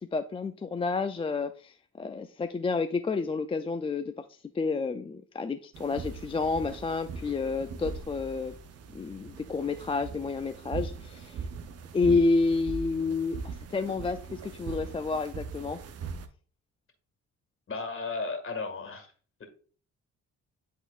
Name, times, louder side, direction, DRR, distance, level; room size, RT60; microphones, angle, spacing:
voice 1, 0.1-4.2 4.5-8.5 8.9-11.4 11.9-15.8, left 4 dB, 20° left, 0.3 m, -30 dB
sound 1, 5.7-16.3, right 5 dB, 55° right, 0.7 m, -40 dB
voice 2, 17.7-19.1 19.4-19.5, left 4 dB, 45° left, 1.9 m, -34 dB
10.5 x 3.8 x 2.4 m
cardioid pair, 90°, 30 cm